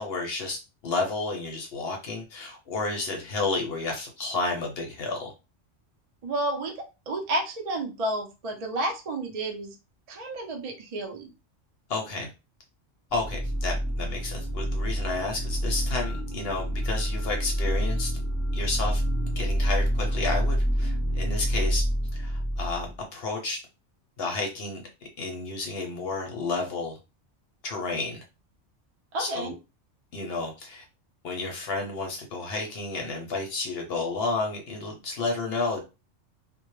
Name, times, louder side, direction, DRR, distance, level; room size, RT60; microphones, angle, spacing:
voice 1, 0.0-5.3 11.9-12.3 13.1-18.1 18.5-19.0 19.4-21.8 22.1-23.6 24.2-24.8 25.2-27.0 27.6-28.2 29.2-29.5 30.1-30.8 31.2-35.8, left 3 dB, 60° left, 2 dB, 0.7 m, -31 dB
voice 2, 6.2-9.7 10.1-11.3 29.1-29.5, right 1 dB, 60° right, 2 dB, 0.4 m, -31 dB
sound 1, 13.1-22.9, equal, 15° right, 0.8 m, -27 dB
2.2 x 2.0 x 3.0 m, 0.28 s
omnidirectional pair, 1.3 m